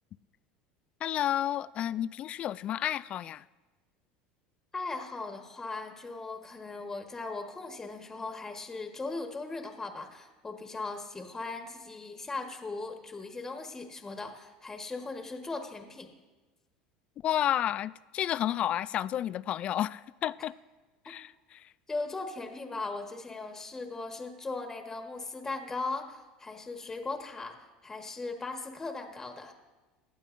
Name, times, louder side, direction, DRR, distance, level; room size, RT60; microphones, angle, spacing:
voice 1, 1.0-3.4 17.2-20.5 21.1-21.3, left 11 dB, 45° left, 0.3 m, -31 dB
voice 2, 4.7-16.1 21.9-27.6 27.8-29.5, left 3 dB, 15° left, 1.4 m, -38 dB
18.0 x 12.5 x 2.6 m
supercardioid pair, 110°, 3 cm